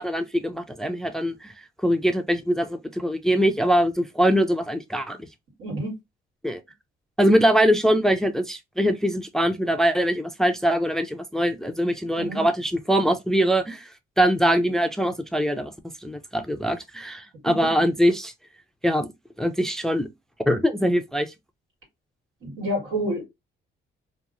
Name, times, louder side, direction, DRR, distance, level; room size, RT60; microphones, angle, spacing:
voice 1, 0.0-1.5 1.8-5.3 6.4-6.6 7.2-13.9 14.2-15.7 16.0-18.3 18.8-19.1 19.4-20.1 20.5-21.3, equal, ahead, 0.4 m, -22 dB
voice 2, 5.6-6.0 12.1-12.4 22.4-23.3, equal, 85° right, 1.7 m, -28 dB
2.8 x 2.3 x 2.5 m
cardioid pair, 90°, 20 cm